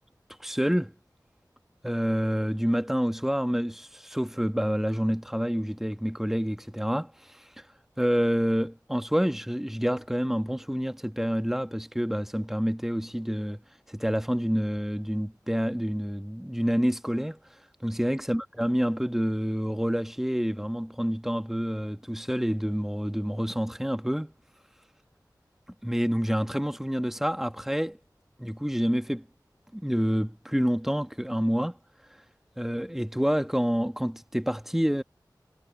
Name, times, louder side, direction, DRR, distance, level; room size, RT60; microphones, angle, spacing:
voice 1, 0.4-0.9 1.8-7.6 8.0-13.6 13.9-17.4 17.8-24.3 25.8-28.0 28.4-29.2 29.7-31.8 32.6-35.0, equal, 5° right, 1.4 m, -28 dB
wide cardioid pair, 50°, 7 cm